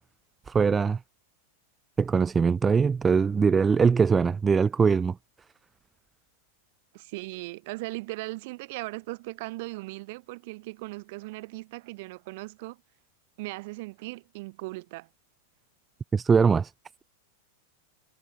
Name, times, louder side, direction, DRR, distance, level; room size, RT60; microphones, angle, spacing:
voice 1, 0.5-1.0 2.0-5.2 16.1-16.7, right 5 dB, 15° right, 0.4 m, -22 dB
voice 2, 6.9-12.8 13.4-15.1, right 23 dB, 50° right, 1.9 m, -38 dB
figure-of-eight pair, 90°, 0 cm